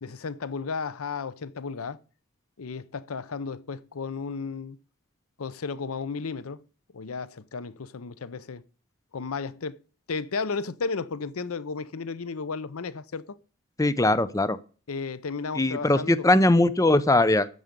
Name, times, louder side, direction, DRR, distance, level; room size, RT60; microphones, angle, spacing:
voice 1, 0.0-2.0 2.6-4.8 5.4-6.6 6.9-8.6 9.1-9.8 10.1-13.4 14.9-16.3, left 4 dB, 85° left, 0.7 m, -33 dB
voice 2, 13.8-14.6 15.5-17.5, left 2 dB, 15° left, 0.5 m, -20 dB
13.0 x 7.8 x 5.3 m
head